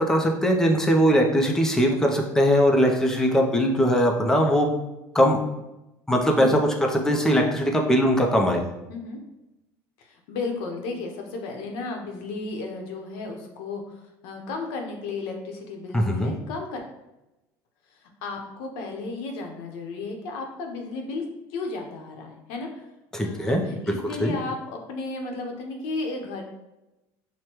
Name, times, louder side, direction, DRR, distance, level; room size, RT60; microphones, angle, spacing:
voice 1, 0.0-4.7 5.1-5.4 6.1-8.6 15.9-16.3 23.1-23.6 23.9-24.3, equal, 5° left, 2 dB, 0.5 m, -21 dB
voice 2, 8.9-9.2 10.0-13.9 14.2-16.8 18.2-21.2 21.5-22.8 23.2-26.4, left 3 dB, 80° left, 2 dB, 0.9 m, -34 dB
6.3 x 2.2 x 3.0 m, 0.95 s
cardioid pair, 145°, 8 cm